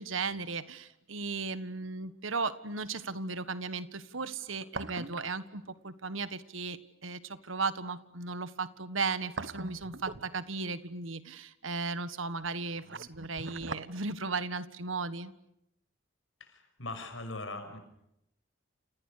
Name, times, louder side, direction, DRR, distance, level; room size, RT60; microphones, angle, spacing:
voice 1, 0.0-15.3, right 4 dB, 80° right, 13 dB, 1.6 m, -36 dB
sound 1, 1.2-1.3 4.3-5.4 5.7-5.8 8.9-10.7 12.4-13.9 14.2-14.3, right 3 dB, 65° right, 1.3 m, -41 dB
voice 2, 16.4-17.8, left 2 dB, 75° left, 7 dB, 6.3 m, -40 dB
29.5 x 28.5 x 6.7 m, 0.81 s
head